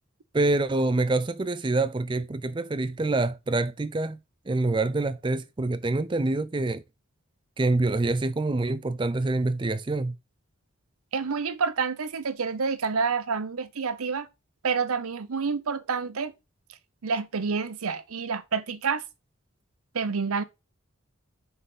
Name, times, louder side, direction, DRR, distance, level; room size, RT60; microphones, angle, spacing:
voice 1, 0.3-4.2 4.5-6.8 7.6-10.1, right 2 dB, 20° right, 0.4 m, -26 dB
voice 2, 11.1-14.3 14.6-16.3 17.0-19.0 19.9-20.4, right 5 dB, 90° right, 0.7 m, -28 dB
5.7 x 4.1 x 5.4 m
head